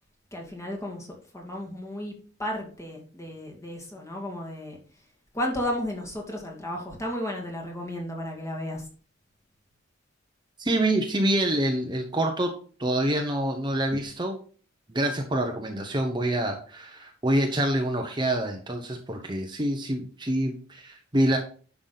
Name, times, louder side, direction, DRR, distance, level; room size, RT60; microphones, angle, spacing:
voice 1, 0.3-2.1 2.4-4.8 5.3-8.8, left 1 dB, 15° left, 0 dB, 2.2 m, -33 dB
voice 2, 10.6-12.5 12.8-14.4 14.9-21.4, right 1 dB, 25° right, 3 dB, 1.0 m, -26 dB
10.5 x 6.0 x 4.1 m, 0.41 s
head